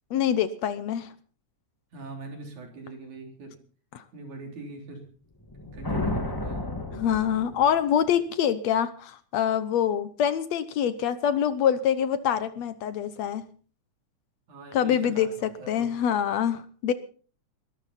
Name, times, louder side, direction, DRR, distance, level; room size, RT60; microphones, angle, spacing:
voice 1, 0.1-1.1 6.9-13.4 14.7-15.3 15.7-16.9, left 9 dB, 70° left, 14 dB, 1.9 m, -25 dB
voice 2, 1.9-3.6 4.1-5.1 5.6-6.7 14.5-15.9, right 3 dB, 75° right, 3 dB, 5.1 m, -42 dB
sound 1, 5.4-7.9, left 2 dB, 10° left, 1.4 m, -32 dB
21.5 x 13.0 x 4.1 m, 0.40 s
omnidirectional pair, 3.4 m